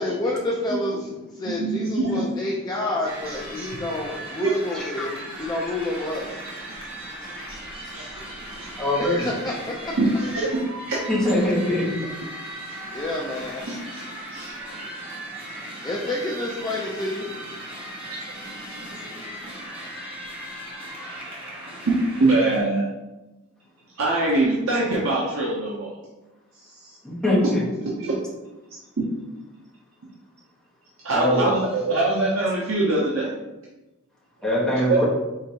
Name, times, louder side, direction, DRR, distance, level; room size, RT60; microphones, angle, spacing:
voice 1, 0.0-6.3 9.0-9.9 12.8-13.7 15.8-17.3, left 1 dB, 20° left, -3 dB, 0.5 m, -29 dB
voice 2, 1.4-2.2 3.3-3.7 4.4-4.6 7.9-8.2 10.0-10.6 10.9-11.0 13.6-14.0 14.3-14.9 18.1-18.2 21.9-22.9 24.0-26.0 28.0-28.2 29.0-29.1 31.0-33.3 34.9-35.0, right 2 dB, 70° right, -4 dB, 0.7 m, -23 dB
sound 1, 3.0-22.6, right 1 dB, 25° right, 1.0 m, -38 dB
voice 3, 4.7-5.3 8.8-9.3 11.1-11.9 27.0-27.6 31.1-31.5 34.4-35.0, left 1 dB, 5° left, -7 dB, 1.2 m, -22 dB
5.0 x 3.5 x 2.8 m, 1.1 s
head